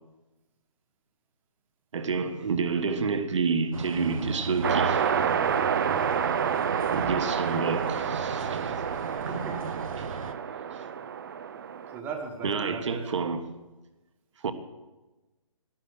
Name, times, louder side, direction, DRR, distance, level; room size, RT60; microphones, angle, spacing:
voice 1, 1.9-5.2 6.9-8.8 10.0-10.1 10.7-10.8 12.4-13.4 14.4-14.5, right 5 dB, 55° right, 1.5 m, -29 dB
sound 1, 3.7-10.3, right 4 dB, 70° right, 1.1 m, -36 dB
sound 2, 4.6-12.0, right 7 dB, 40° right, 0.6 m, -29 dB
voice 2, 9.3-9.8 11.9-13.0, right 5 dB, 10° right, 1.5 m, -37 dB
12.0 x 11.0 x 8.4 m
hypercardioid pair, 160°, 18 cm